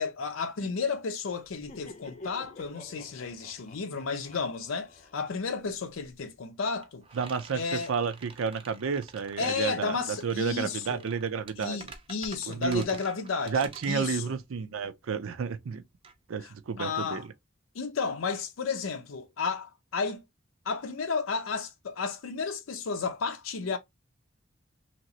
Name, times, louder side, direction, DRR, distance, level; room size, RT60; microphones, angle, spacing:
voice 1, 0.0-7.0 7.5-7.9 9.4-11.0 11.6-13.6 13.9-14.3 16.4-16.5 16.8-17.2 17.7-20.2 20.7-23.8, left 5 dB, 85° left, 0.5 m, -32 dB
Laughter, 1.4-6.1, left 2 dB, 35° left, 0.5 m, -49 dB
sound 1, 4.8-17.2, right 4 dB, 25° right, 0.4 m, -50 dB
voice 2, 7.1-11.8 12.5-12.8 13.5-15.8 16.3-17.3, right 6 dB, 80° right, 0.5 m, -31 dB
2.9 x 2.9 x 2.7 m
head